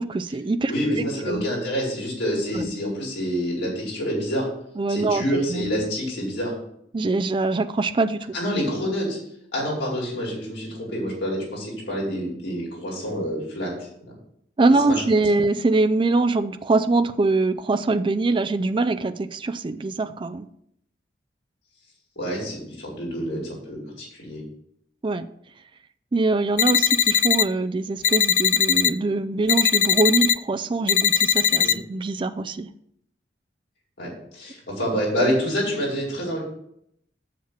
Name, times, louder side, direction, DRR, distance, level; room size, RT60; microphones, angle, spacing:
voice 1, 0.0-0.7 1.0-1.4 2.5-2.7 4.8-5.6 6.9-8.2 14.6-20.5 25.0-25.3 26.1-32.7, right 3 dB, 30° right, 10 dB, 0.4 m, -23 dB
voice 2, 0.7-4.5 4.9-6.5 8.3-9.2 9.5-13.9 14.9-15.0 22.2-23.4 23.7-24.4 31.6-31.7 34.0-36.4, equal, 80° left, -4 dB, 4.6 m, -27 dB
sound 1, 26.6-27.4 28.0-28.9 29.5-30.3 30.9-31.7, left 9 dB, 45° left, 0.3 m, -20 dB
7.4 x 7.4 x 5.7 m, 0.73 s
head